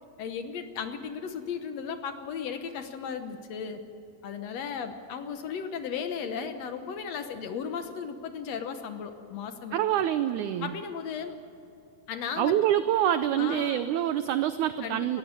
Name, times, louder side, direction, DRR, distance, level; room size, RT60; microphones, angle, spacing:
voice 1, 0.2-3.8 4.2-9.8 10.6-11.4 12.1-12.6 13.4-13.9 14.8-15.2, left 6 dB, 65° left, 7 dB, 1.7 m, -35 dB
voice 2, 9.7-10.7 12.4-15.2, right 11 dB, 80° right, 11 dB, 1.7 m, -26 dB
20.0 x 15.5 x 9.6 m, 2.8 s
omnidirectional pair, 4.2 m